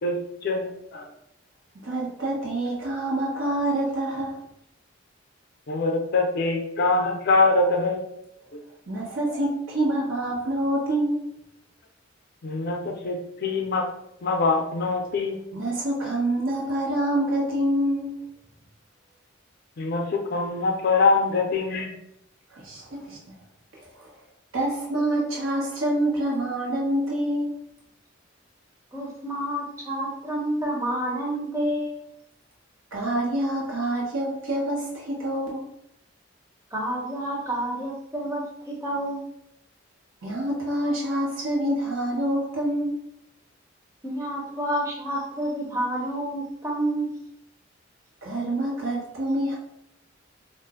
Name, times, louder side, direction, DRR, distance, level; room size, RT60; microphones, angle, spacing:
voice 1, 0.4-1.1 5.7-8.0 12.4-13.9 14.2-15.4 19.8-22.0, left 3 dB, 50° left, 2 dB, 0.4 m, -24 dB
voice 2, 1.8-4.4 8.9-11.2 15.5-18.3 22.5-23.4 24.0-24.1 24.5-27.5 32.9-35.7 40.2-43.0 48.2-49.6, right 1 dB, 80° right, -4 dB, 1.0 m, -26 dB
voice 3, 28.9-32.0 36.7-39.2 44.0-47.1, right 1 dB, 15° right, -2 dB, 0.7 m, -29 dB
2.4 x 2.0 x 3.6 m, 0.79 s
head